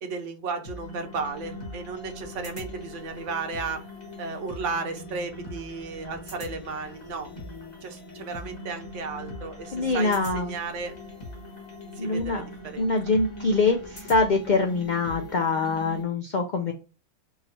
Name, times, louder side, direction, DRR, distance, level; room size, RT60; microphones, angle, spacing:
voice 1, 0.0-3.8 4.2-7.3 7.8-10.9 12.0-12.9, right 4 dB, 65° right, 6 dB, 1.0 m, -34 dB
sound 1, 0.6-16.0, left 1 dB, 30° left, 1.3 m, -41 dB
voice 2, 9.7-10.5 12.0-12.4 12.8-16.7, left 3 dB, 85° left, 3 dB, 0.4 m, -24 dB
4.7 x 2.7 x 2.7 m, 0.33 s
omnidirectional pair, 1.5 m